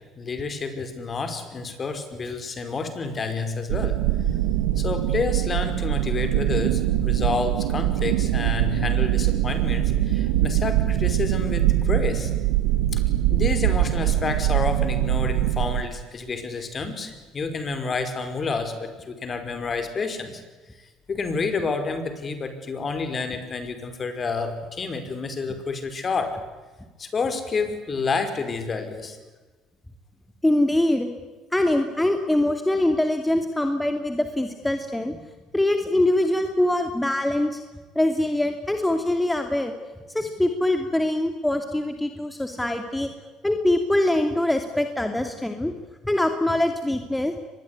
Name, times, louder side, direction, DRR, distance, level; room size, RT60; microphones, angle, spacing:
voice 1, 0.2-4.0 4.8-12.3 12.9-13.0 13.3-20.4 21.1-26.4 27.0-29.2, left 4 dB, 35° left, 8 dB, 5.2 m, -29 dB
sound 1, 3.7-15.8, right 13 dB, 85° right, 1.5 m, -23 dB
voice 2, 30.4-31.1 31.5-35.2 35.5-37.6 37.9-39.7 40.1-43.1 43.4-45.7 46.0-47.3, left 1 dB, 10° left, 6 dB, 2.7 m, -23 dB
24.0 x 21.0 x 9.9 m, 1.3 s
supercardioid pair, 75°, 0 cm